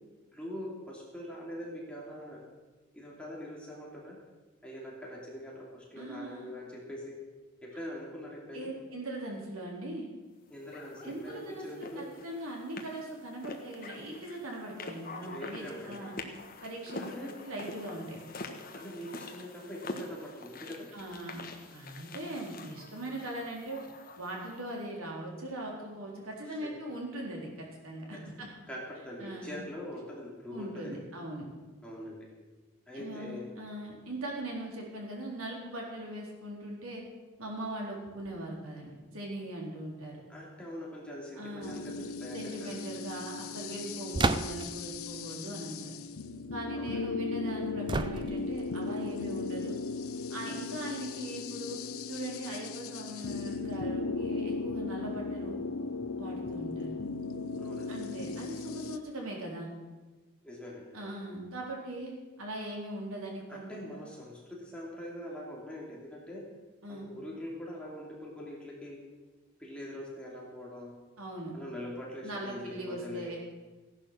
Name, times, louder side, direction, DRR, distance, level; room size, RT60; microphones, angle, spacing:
voice 1, 0.3-2.4 2.9-4.2 4.6-7.1 7.6-8.7 10.5-12.0 15.2-16.1 17.0-17.3 18.7-20.9 26.5-26.7 28.7-31.0 31.8-32.3 32.9-33.5 40.3-42.8 46.7-47.0 57.6-58.0 60.4-61.1 63.5-66.4 66.9-69.0 69.6-70.9 71.5-73.3, left 1 dB, 5° left, -4 dB, 2.9 m, -43 dB
voice 2, 6.0-6.5 8.5-10.1 11.0-16.1 16.6-18.2 20.9-21.4 21.7-23.8 24.2-28.5 29.2-29.6 30.5-31.4 32.9-37.0 37.4-40.2 41.4-41.8 42.3-45.9 46.5-49.8 50.3-55.6 56.2-57.0 57.9-59.7 60.9-63.7 66.8-67.1 71.2-71.6 72.2-73.4, right 1 dB, 75° right, -1 dB, 3.8 m, -40 dB
sound 1, 10.7-24.8, left 3 dB, 40° left, 1.3 m, -46 dB
sound 2, 41.6-59.0, left 4 dB, 80° left, 0.7 m, -37 dB
sound 3, 44.1-44.8 47.9-48.6, right 3 dB, 20° right, 0.4 m, -30 dB
16.0 x 11.0 x 6.2 m, 1.2 s
head